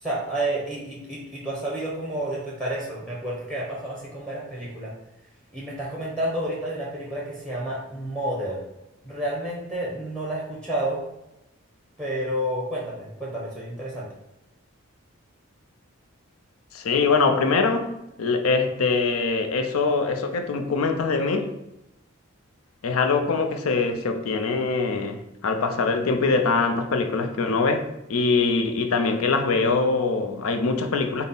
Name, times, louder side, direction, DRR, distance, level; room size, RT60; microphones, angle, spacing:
voice 1, 0.0-4.9 5.5-8.6 9.0-11.0 12.0-14.1, right 1 dB, 5° left, 0.8 m, -30 dB
voice 2, 16.7-17.9 18.2-21.5 22.8-31.2, left 4 dB, 85° left, 0.5 m, -23 dB
5.4 x 2.0 x 4.0 m
head